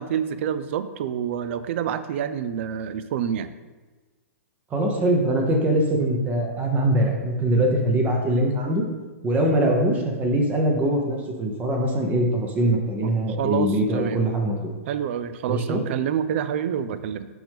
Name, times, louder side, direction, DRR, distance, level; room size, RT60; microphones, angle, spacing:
voice 1, 0.0-3.5 13.0-13.1 13.4-14.2 14.9-17.3, right 8 dB, 55° right, 13 dB, 0.4 m, -27 dB
voice 2, 4.7-8.9 9.2-14.7 15.5-15.8, right 1 dB, 20° right, 2 dB, 0.9 m, -22 dB
6.1 x 5.2 x 3.5 m, 1.3 s
hypercardioid pair, 135°, 8 cm